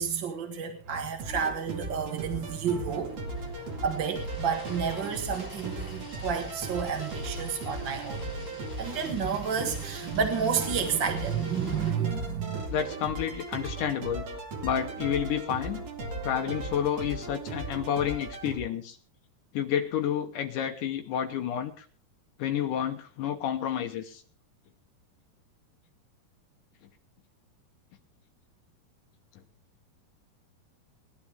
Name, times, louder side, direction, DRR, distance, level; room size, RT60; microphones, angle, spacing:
voice 1, 0.0-3.2 3.8-8.2 8.8-12.6, right 7 dB, 70° right, 5 dB, 1.1 m, -30 dB
sound 1, 0.8-18.6, right 2 dB, 45° right, 2.9 m, -37 dB
sound 2, 2.2-11.9, equal, 10° left, 5.7 m, -46 dB
voice 2, 12.7-14.3 14.6-15.8 16.2-19.0 19.5-21.9 22.4-24.2, left 9 dB, 75° left, 6 dB, 1.9 m, -30 dB
20.0 x 11.5 x 3.5 m, 0.37 s
omnidirectional pair, 4.9 m